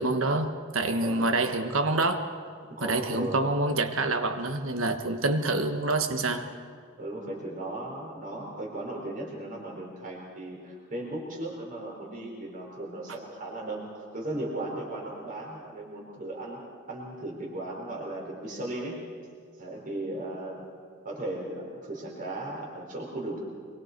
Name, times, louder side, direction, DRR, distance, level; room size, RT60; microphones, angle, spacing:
voice 1, 0.0-2.3 2.8-6.4, right 2 dB, 70° right, 7 dB, 1.5 m, -27 dB
voice 2, 1.0-1.3 2.7-3.4 7.0-16.6 16.9-19.1 19.6-20.6 21.0-23.4, right 1 dB, 40° right, -3 dB, 4.4 m, -36 dB
24.5 x 23.0 x 4.7 m, 2.2 s
head